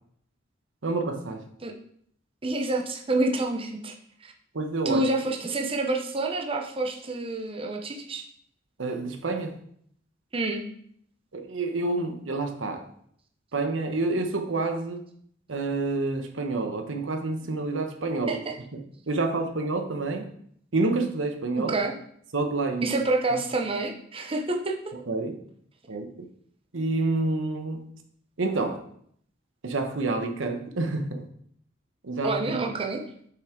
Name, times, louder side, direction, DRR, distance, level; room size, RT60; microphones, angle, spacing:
voice 1, 0.8-1.4 4.5-5.1 8.8-9.5 11.3-12.9 13.5-15.0 15.5-18.4 18.7-20.3 20.7-21.7 22.3-22.9 24.9-25.3 25.9-26.3 26.7-27.9 28.4-28.8 29.6-31.2 32.0-32.7, right 3 dB, 90° right, 5 dB, 1.0 m, -28 dB
voice 2, 2.4-3.9 4.2-4.3 4.8-8.3 10.3-10.6 18.3-18.5 21.7-21.9 22.8-24.9 32.2-33.0, right 2 dB, 30° right, 2 dB, 0.8 m, -28 dB
6.8 x 5.8 x 3.8 m, 0.65 s
head